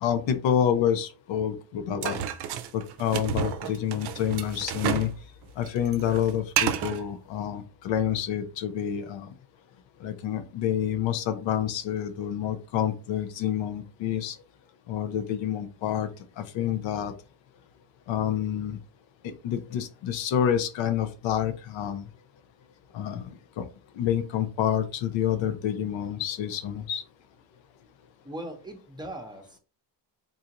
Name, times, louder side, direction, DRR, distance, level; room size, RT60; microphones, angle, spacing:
voice 1, 0.0-2.2 2.7-5.1 5.6-9.3 10.0-14.4 14.9-16.1 16.4-17.1 18.1-18.8 19.2-22.0 22.9-23.2 23.6-23.7 24.0-27.0, left 9 dB, 80° left, 0.7 m, -28 dB
sound 1, 2.0-5.2 5.4-7.0, right 9 dB, 60° right, 0.6 m, -30 dB
voice 2, 28.2-29.6, right 1 dB, 10° right, 0.8 m, -39 dB
3.9 x 2.4 x 2.9 m
cardioid pair, 95°, 45 cm